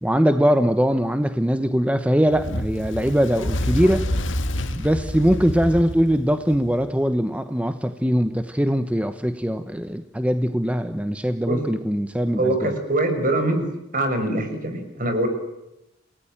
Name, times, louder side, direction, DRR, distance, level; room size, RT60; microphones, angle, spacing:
voice 1, 0.0-4.0 4.7-12.7, equal, 5° right, 9 dB, 1.1 m, -21 dB
Fire, 2.3-6.8, left 1 dB, 85° left, 2.0 m, -28 dB
voice 2, 12.4-15.3, right 2 dB, 45° right, 7 dB, 6.0 m, -23 dB
28.5 x 19.0 x 9.0 m, 0.88 s
head